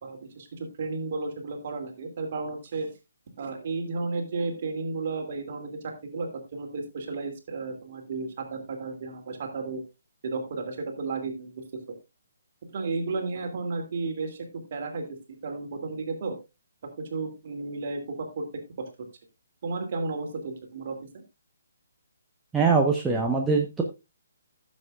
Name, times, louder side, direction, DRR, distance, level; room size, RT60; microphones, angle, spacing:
voice 1, 0.0-2.9 3.4-9.8 10.2-11.6 12.7-16.4 17.0-18.4 18.8-18.9 19.6-21.0, right 3 dB, 40° right, 4 dB, 2.6 m, -33 dB
voice 2, 22.5-23.8, right 4 dB, 5° right, -1 dB, 0.9 m, -22 dB
15.5 x 7.3 x 2.4 m, 0.24 s
figure-of-eight pair, 135°, 0 cm